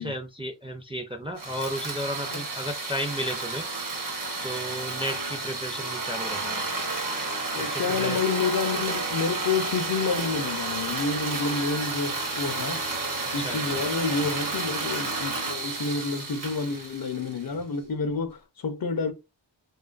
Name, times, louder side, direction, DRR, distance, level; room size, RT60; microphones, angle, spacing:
voice 1, 0.0-6.6 7.5-8.2 13.4-13.8, equal, 15° right, 0.4 m, -34 dB
sound 1, 1.4-17.5, right 3 dB, 45° right, 0.7 m, -31 dB
voice 2, 7.5-12.8 13.3-19.1, left 4 dB, 50° left, 0.5 m, -29 dB
2.4 x 2.3 x 2.4 m
wide cardioid pair, 70°, 47 cm